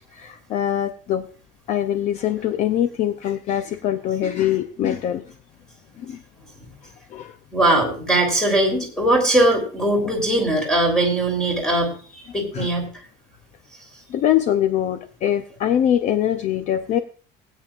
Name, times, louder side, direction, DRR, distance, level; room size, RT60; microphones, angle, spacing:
voice 1, 0.1-1.3 1.7-5.2 6.0-6.2 7.1-7.4 10.0-10.1 12.5-12.7 14.1-17.0, left 11 dB, 40° left, 10 dB, 0.6 m, -23 dB
voice 2, 7.5-12.9, right 1 dB, 5° left, 2 dB, 3.5 m, -20 dB
20.0 x 9.2 x 2.4 m, 0.39 s
cardioid pair, 180°, 18 cm